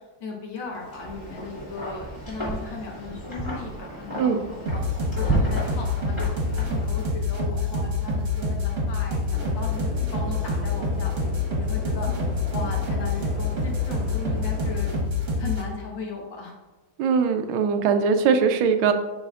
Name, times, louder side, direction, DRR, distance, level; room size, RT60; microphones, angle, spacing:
voice 1, 0.0-4.8 5.2-14.9 15.4-16.6, left 4 dB, 70° left, -1 dB, 1.9 m, -37 dB
Wind, 0.7-7.2, right 1 dB, 15° left, 2.2 m, -32 dB
sound 1, 4.7-15.6, left 3 dB, 45° right, 1.3 m, -26 dB
sound 2, 9.3-15.0, right 1 dB, 15° right, 1.4 m, -40 dB
voice 2, 17.0-18.9, right 6 dB, 90° right, 8 dB, 1.4 m, -21 dB
11.5 x 4.1 x 2.4 m, 1.1 s
omnidirectional pair, 2.1 m